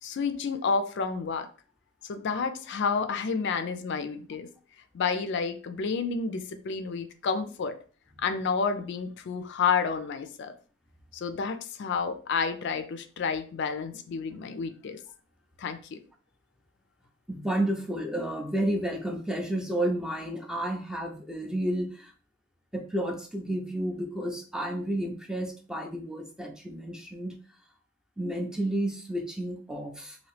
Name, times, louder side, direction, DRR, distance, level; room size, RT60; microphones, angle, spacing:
voice 1, 0.0-1.5 2.0-4.5 4.9-7.8 8.2-10.6 11.1-15.0 15.6-16.0, left 5 dB, 55° left, 9 dB, 0.4 m, -30 dB
voice 2, 17.3-22.1 22.7-27.4 28.2-30.2, right 1 dB, 5° right, 3 dB, 0.4 m, -31 dB
2.9 x 2.6 x 3.2 m, 0.39 s
head